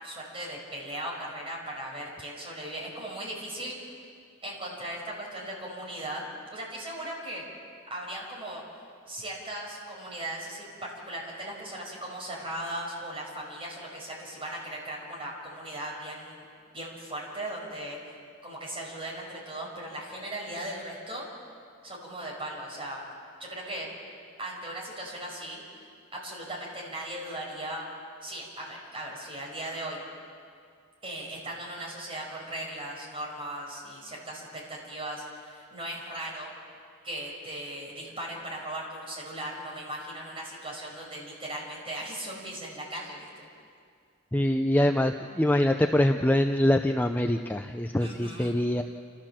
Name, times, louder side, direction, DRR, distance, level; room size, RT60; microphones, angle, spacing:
voice 1, 0.0-3.8 4.4-7.5 7.9-8.6 9.1-16.5 16.7-18.0 18.4-21.3 21.8-23.1 23.4-23.9 24.4-25.6 26.1-27.9 28.2-30.0 31.0-36.5 37.0-43.5 48.0-48.6, right 1 dB, 25° right, -3 dB, 5.9 m, -38 dB
voice 2, 44.3-48.8, left 1 dB, 10° left, 5 dB, 0.5 m, -24 dB
29.5 x 14.0 x 7.4 m, 2.2 s
head